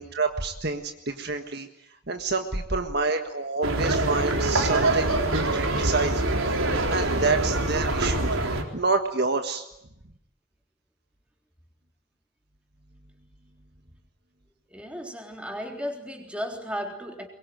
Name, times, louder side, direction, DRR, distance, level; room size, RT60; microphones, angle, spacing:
voice 1, 0.0-1.7 2.1-6.2 6.7-9.6, right 3 dB, 50° right, 6 dB, 1.6 m, -28 dB
sound 1, 3.6-8.6, right 2 dB, 80° right, 4.0 m, -24 dB
voice 2, 14.7-17.3, equal, 5° right, 3 dB, 3.5 m, -35 dB
23.0 x 22.5 x 9.1 m, 0.79 s
head